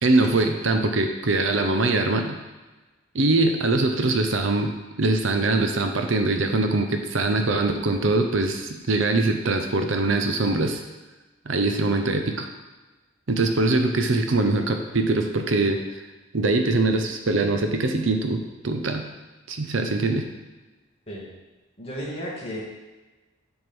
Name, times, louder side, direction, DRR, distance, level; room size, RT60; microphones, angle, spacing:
voice 1, 0.0-2.4 3.1-4.7 5.0-10.8 11.5-12.5 13.3-15.8 16.3-19.0 19.5-20.2, right 2 dB, 65° right, 5 dB, 0.7 m, -22 dB
voice 2, 21.8-22.6, equal, 30° left, -5 dB, 2.0 m, -33 dB
7.8 x 3.7 x 6.0 m, 1.2 s
head